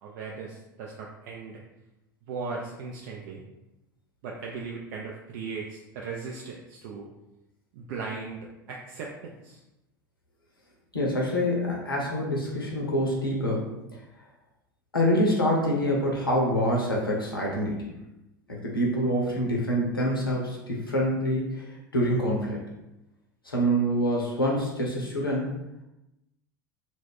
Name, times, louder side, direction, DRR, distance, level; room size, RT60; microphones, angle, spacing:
voice 1, 0.0-1.6 2.3-3.4 4.2-7.1 7.7-9.6, right 4 dB, 60° right, -1 dB, 0.4 m, -38 dB
voice 2, 10.9-13.7 14.9-17.9 18.5-21.7 21.9-22.6 23.4-25.5, equal, 90° left, -3 dB, 0.5 m, -26 dB
2.2 x 2.0 x 3.5 m, 0.93 s
figure-of-eight pair, 75°, 11 cm